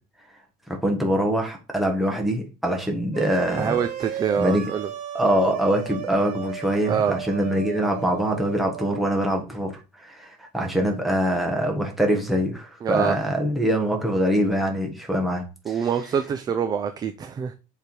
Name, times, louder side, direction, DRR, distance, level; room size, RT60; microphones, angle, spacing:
voice 1, 0.7-3.8 4.4-4.6 5.1-15.9, equal, ahead, 1 dB, 1.3 m, -24 dB
sound 1, 3.1-9.3, right 10 dB, 40° right, 1.1 m, -35 dB
voice 2, 3.6-4.9 6.9-7.2 12.8-13.2 15.7-17.5, right 7 dB, 20° right, 8 dB, 0.5 m, -25 dB
6.7 x 3.5 x 4.5 m, 0.31 s
cardioid pair, 145°, 18 cm